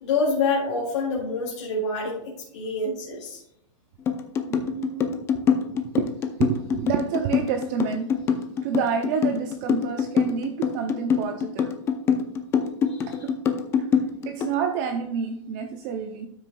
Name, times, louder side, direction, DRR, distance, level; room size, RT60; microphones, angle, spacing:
voice 1, 0.0-3.4 12.9-13.2, left 3 dB, 60° left, -3 dB, 2.2 m, -27 dB
sound 1, 4.1-14.6, left 7 dB, 15° left, 0.5 m, -24 dB
voice 2, 4.5-5.4 5.7-8.2 8.6-11.7 13.1-13.4 13.9-16.3, right 7 dB, 30° right, 5 dB, 0.5 m, -29 dB
12.0 x 6.3 x 2.3 m, 0.76 s
hypercardioid pair, 155°, 17 cm